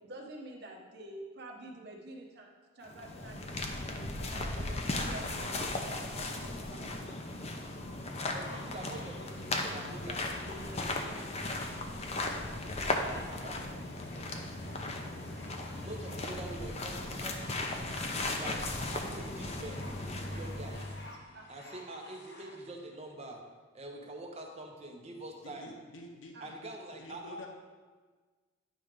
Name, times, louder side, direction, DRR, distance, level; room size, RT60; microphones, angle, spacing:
voice 1, 0.0-7.2 13.0-13.9 21.3-21.5 26.3-26.5, right 1 dB, 60° right, 0 dB, 1.0 m, -49 dB
Walking back and forth, 2.8-21.1, left 2 dB, 35° left, 0.6 m, -37 dB
sound 1, 8.0-22.6 23.5-23.6, left 1 dB, 65° left, 1.1 m, -53 dB
voice 2, 8.3-11.4 15.8-17.4 18.3-18.6 18.9-20.9 21.5-23.4 23.7-25.7 26.4-27.4, right 1 dB, 35° right, 2 dB, 0.9 m, -45 dB
voice 3, 25.4-27.5, left 1 dB, 85° left, 2 dB, 0.8 m, -49 dB
10.0 x 3.4 x 5.1 m, 1.4 s
head